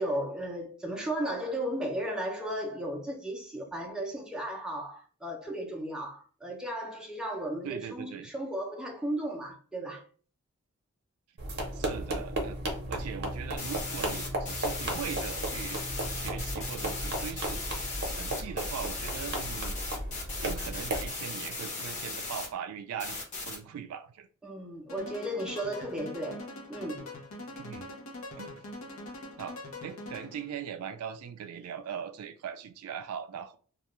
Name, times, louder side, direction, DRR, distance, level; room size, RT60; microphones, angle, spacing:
voice 1, 0.0-10.0 24.4-27.1, right 1 dB, 5° right, 0.4 m, -35 dB
voice 2, 7.6-8.3 11.7-12.6 12.9-19.8 20.4-24.3 27.6-27.9 28.4-28.6 29.4-33.6, right 8 dB, 80° right, 0.3 m, -40 dB
sound 1, 11.4-21.1, right 1 dB, 50° right, 0.7 m, -35 dB
sound 2, 13.6-22.5 23.0-23.6, left 3 dB, 35° left, 0.9 m, -37 dB
sound 3, 24.9-30.5, left 2 dB, 70° left, 0.7 m, -43 dB
2.3 x 2.2 x 2.9 m
head